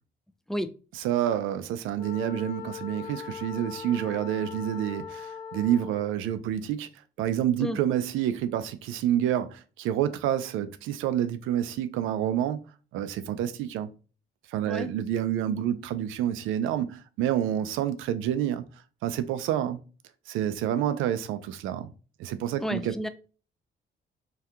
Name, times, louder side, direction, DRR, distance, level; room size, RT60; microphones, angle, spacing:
voice 1, 0.9-6.9 7.2-12.6 12.9-13.9 14.5-18.7 19.0-19.8 20.3-21.9 22.2-22.9, right 11 dB, 90° right, 0.4 m, -28 dB
Wind instrument woodwind instrument, 2.0-6.1, left 7 dB, 20° left, 1.1 m, -40 dB
voice 2, 22.6-23.1, equal, ahead, 0.3 m, -31 dB
2.8 x 2.3 x 3.4 m
cardioid pair, 90°, 20 cm